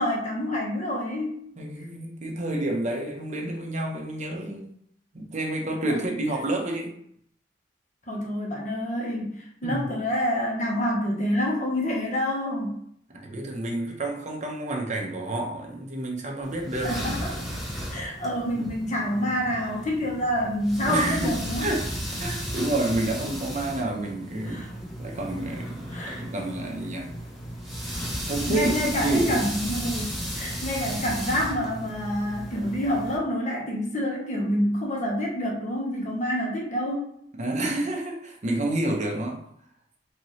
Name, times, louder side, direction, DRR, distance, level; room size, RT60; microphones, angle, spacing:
voice 1, 0.0-1.4 5.9-6.0 8.1-12.7 16.8-17.5 17.9-21.7 24.5-24.7 25.9-26.2 28.5-37.1, equal, 40° left, -2 dB, 1.1 m, -27 dB
voice 2, 1.6-4.7 5.1-6.9 9.6-9.9 13.1-17.0 18.5-18.7 20.8-21.3 21.6-21.9 22.2-24.6 25.0-27.1 28.2-29.5 37.4-39.4, right 2 dB, 40° right, 1 dB, 0.8 m, -29 dB
sound 1, 16.4-33.2, equal, ahead, 1.2 m, -34 dB
4.5 x 2.8 x 3.1 m, 0.69 s
head